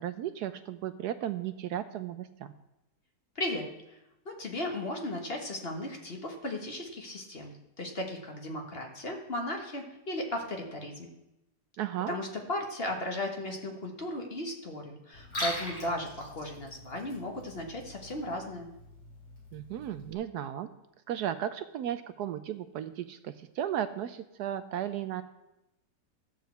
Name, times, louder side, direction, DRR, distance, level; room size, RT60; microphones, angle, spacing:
voice 1, 0.0-2.5 11.8-12.1 19.5-20.7 21.1-25.2, right 11 dB, 75° right, 11 dB, 1.0 m, -35 dB
voice 2, 4.2-11.1 12.1-18.7, left 1 dB, 35° left, 2 dB, 1.4 m, -36 dB
Liquid, 15.1-20.1, left 1 dB, 65° left, 4.1 m, -42 dB
13.0 x 4.9 x 8.0 m, 0.91 s
omnidirectional pair, 1.9 m